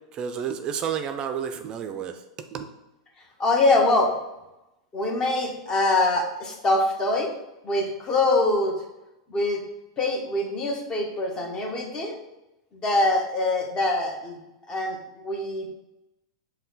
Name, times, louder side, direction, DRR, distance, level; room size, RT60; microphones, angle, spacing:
voice 1, 0.1-2.2 2.5-2.7, right 8 dB, 35° right, 7 dB, 0.3 m, -30 dB
voice 2, 3.4-4.1 4.9-7.4 7.6-8.7 9.3-9.6 10.0-12.2 12.8-14.4 14.7-15.7, left 2 dB, 30° left, 2 dB, 1.0 m, -24 dB
5.4 x 2.2 x 3.9 m, 0.93 s
hypercardioid pair, 115°, 3 cm